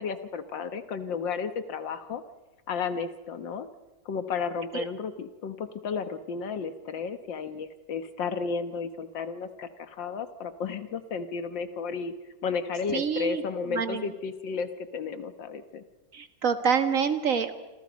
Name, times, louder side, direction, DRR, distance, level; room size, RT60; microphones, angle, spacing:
voice 1, 0.0-2.2 2.7-3.7 4.1-12.1 12.4-15.8, left 5 dB, 75° left, 10 dB, 1.9 m, -33 dB
voice 2, 12.9-13.4 13.7-14.1 16.1-17.5, right 6 dB, 45° right, 9 dB, 1.9 m, -27 dB
28.0 x 26.5 x 5.2 m, 1.1 s
omnidirectional pair, 2.1 m